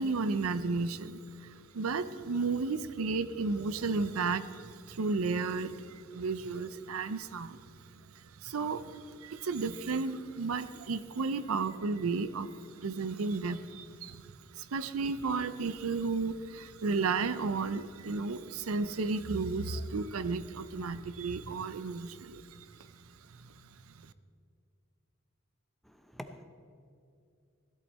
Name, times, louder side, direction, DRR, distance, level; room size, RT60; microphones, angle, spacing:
voice 1, 0.0-7.6 8.4-12.5 12.8-14.3 14.5-22.7 23.4-23.5 24.0-24.1, right 4 dB, 80° right, 14 dB, 0.5 m, -33 dB
voice 2, 25.9-26.4, equal, ahead, 7 dB, 0.6 m, -46 dB
16.5 x 11.5 x 4.2 m, 2.5 s
head